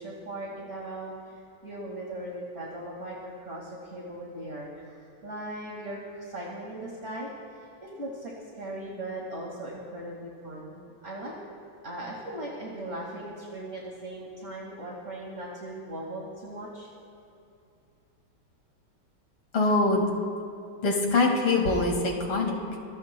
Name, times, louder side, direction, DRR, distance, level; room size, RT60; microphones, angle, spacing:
voice 1, 0.0-11.4 11.8-16.9, right 1 dB, 35° right, -4 dB, 2.3 m, -39 dB
voice 2, 19.5-20.0 20.8-22.6, left 3 dB, 85° left, 0 dB, 2.9 m, -23 dB
26.0 x 23.5 x 2.2 m, 2.6 s
omnidirectional pair, 2.2 m